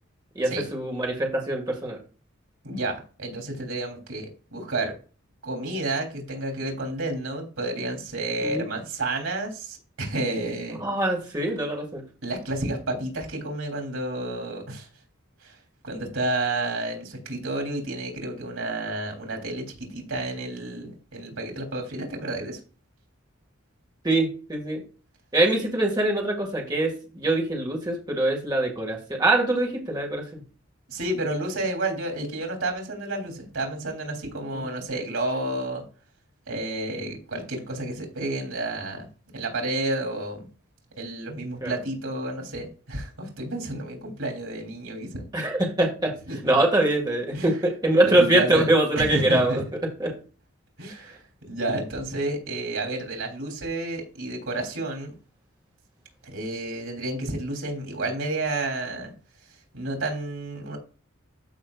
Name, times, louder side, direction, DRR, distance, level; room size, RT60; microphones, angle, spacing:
voice 1, 0.4-2.0 8.4-8.7 10.8-12.0 24.0-24.8 25.3-30.4 34.5-34.7 41.6-41.8 45.3-46.1 46.4-49.6 50.0-50.1, right 1 dB, 20° right, -1 dB, 1.9 m, -23 dB
voice 2, 2.6-5.0 5.4-10.8 12.2-14.9 15.4-15.5 15.8-22.6 30.9-35.8 36.5-39.1 39.3-40.5 41.0-45.2 46.3-46.6 47.3-47.5 48.0-48.7 49.0-49.6 50.8-51.2 51.5-55.1 56.2-59.1 59.7-60.8, right 2 dB, 85° right, 2 dB, 3.2 m, -30 dB
13.5 x 5.4 x 2.4 m, 0.36 s
head